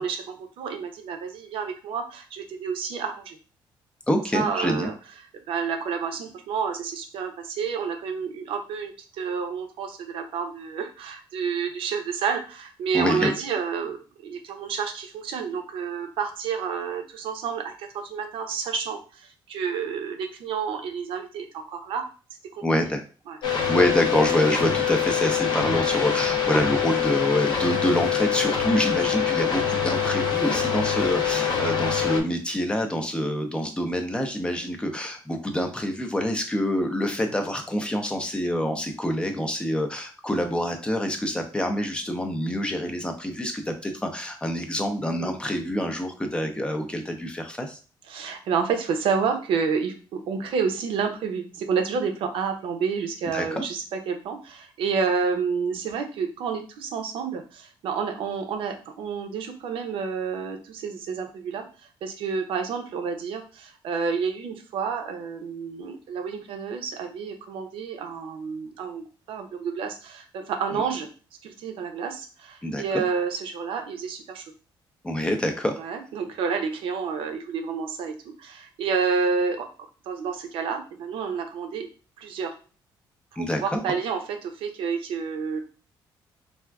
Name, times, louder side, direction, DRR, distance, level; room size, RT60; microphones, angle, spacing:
voice 1, 0.0-3.4 4.3-4.9 5.5-22.1 22.5-22.6 23.3-23.4 45.2-45.4 48.1-61.6 62.0-71.1 71.4-74.4 75.8-78.1 78.4-79.7 80.1-81.9 82.2-82.5 83.3-85.6, right 6 dB, 80° right, 6 dB, 0.6 m, -29 dB
voice 2, 4.1-4.9 12.9-13.3 22.6-23.0 23.7-47.8 53.3-53.6 70.7-70.9 72.6-73.0 75.0-75.8 83.4-83.8, equal, 10° left, 4 dB, 0.5 m, -26 dB
sound 1, 23.4-32.2, left 8 dB, 60° left, 0.6 m, -24 dB
3.5 x 2.4 x 2.2 m, 0.36 s
cardioid pair, 110°, 9 cm